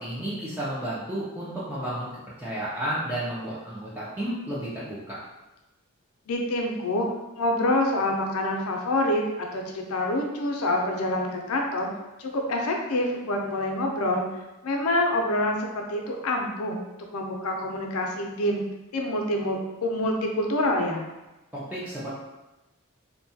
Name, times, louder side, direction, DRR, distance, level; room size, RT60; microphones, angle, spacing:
voice 1, 0.0-2.1 2.4-5.2 21.5-22.1, right 1 dB, 10° right, -9 dB, 0.4 m, -32 dB
voice 2, 6.3-7.1 7.4-11.9 12.2-14.2 14.6-16.8 17.1-18.6 18.9-21.0, left 1 dB, 80° left, 1 dB, 0.5 m, -26 dB
2.7 x 2.2 x 2.7 m, 1.0 s
head